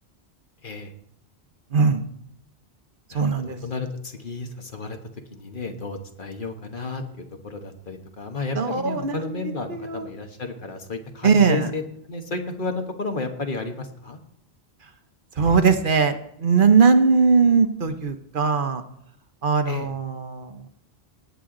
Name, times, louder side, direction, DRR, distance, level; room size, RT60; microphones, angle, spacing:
voice 1, 1.7-2.0 3.1-3.6 8.5-9.4 9.7-10.1 11.2-11.7 15.4-18.8 19.4-20.6, right 5 dB, 55° right, 8 dB, 1.0 m, -20 dB
voice 2, 3.1-5.0 5.3-7.0 7.4-11.8 12.1-14.2 19.7-19.9, left 3 dB, 55° left, 5 dB, 1.4 m, -32 dB
18.5 x 7.7 x 3.8 m, 0.74 s
omnidirectional pair, 1.1 m